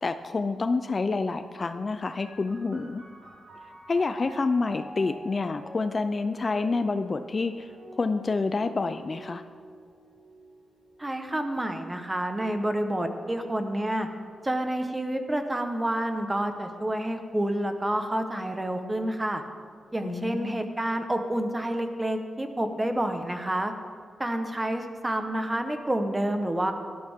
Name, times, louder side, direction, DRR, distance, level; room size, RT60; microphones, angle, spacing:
voice 1, 0.0-3.0 3.9-7.7 8.0-9.4 20.0-20.6, left 3 dB, 35° left, 10 dB, 0.4 m, -28 dB
sound 1, 2.2-15.4 16.3-17.1, right 1 dB, 65° right, 4.1 m, -49 dB
voice 2, 11.0-14.1 14.4-19.4 19.9-23.7 24.2-26.7, right 1 dB, 15° right, 6 dB, 1.1 m, -29 dB
17.5 x 12.5 x 3.6 m, 2.1 s
wide cardioid pair, 135°, 0 cm